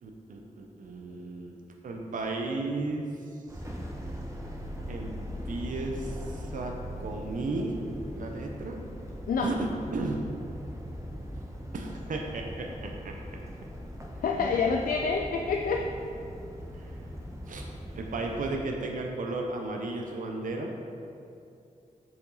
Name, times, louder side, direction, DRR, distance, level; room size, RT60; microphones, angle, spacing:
voice 1, 0.0-1.5 1.8-3.1 4.9-5.2 5.5-7.8 8.2-8.8 9.4-10.2 11.7-13.2 14.4-14.5 16.7-16.9 17.5-17.7 17.9-20.7, right 2 dB, 70° right, 1 dB, 0.7 m, -34 dB
sound 1, 3.5-18.5, equal, 20° right, 0.8 m, -40 dB
voice 2, 14.2-15.9, left 5 dB, 90° left, 1 dB, 0.4 m, -27 dB
6.9 x 5.0 x 4.0 m, 2.6 s
wide cardioid pair, 155°, 14 cm